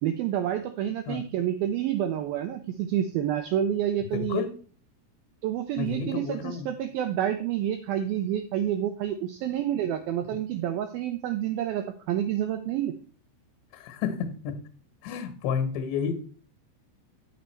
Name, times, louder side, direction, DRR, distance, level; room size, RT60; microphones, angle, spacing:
voice 1, 0.0-4.4 5.4-12.9, right 11 dB, 90° right, 8 dB, 2.0 m, -28 dB
voice 2, 4.1-4.5 5.8-6.7 13.7-14.6 15.0-16.2, left 7 dB, 80° left, 8 dB, 3.4 m, -31 dB
9.5 x 6.6 x 4.4 m, 0.42 s
omnidirectional pair, 5.0 m